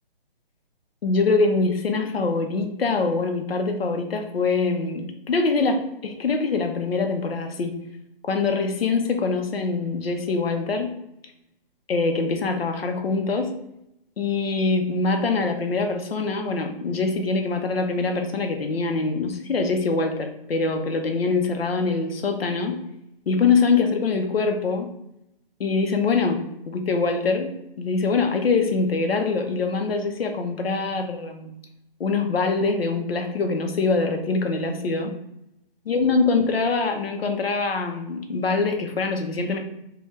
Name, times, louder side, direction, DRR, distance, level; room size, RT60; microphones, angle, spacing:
voice 1, 1.0-7.7 8.2-10.9 11.9-13.5 14.2-22.8 23.3-24.9 25.6-27.5 27.8-31.5 32.0-35.1 35.9-39.6, left 4 dB, 85° left, 4 dB, 0.7 m, -24 dB
3.2 x 2.2 x 3.1 m, 0.82 s
hypercardioid pair, 175°, 29 cm